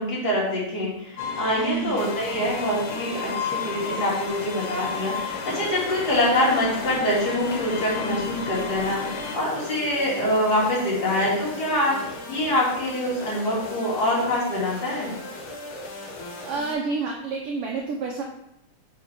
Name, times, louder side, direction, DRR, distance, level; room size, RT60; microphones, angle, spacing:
voice 1, 0.0-15.1, left 1 dB, 35° left, -5 dB, 2.6 m, -25 dB
sound 1, 1.2-9.4, left 5 dB, 85° left, 2.7 m, -33 dB
voice 2, 1.7-2.1 16.4-18.2, right 4 dB, 80° right, 0 dB, 1.3 m, -29 dB
sound 2, 2.0-16.7, left 1 dB, 65° left, 2.4 m, -38 dB
8.9 x 5.3 x 3.4 m, 0.80 s
omnidirectional pair, 3.6 m